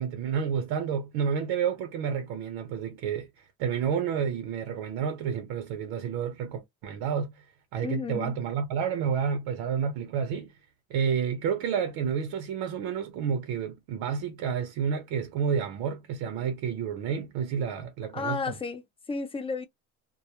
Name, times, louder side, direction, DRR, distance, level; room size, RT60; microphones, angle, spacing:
voice 1, 0.0-3.3 3.6-7.4 7.7-10.5 10.9-18.4, right 7 dB, 75° right, 0.7 m, -30 dB
voice 2, 7.8-8.3 18.1-18.8 19.1-19.7, left 4 dB, 15° left, 0.4 m, -32 dB
2.2 x 2.1 x 2.9 m
cardioid pair, 120°, 42 cm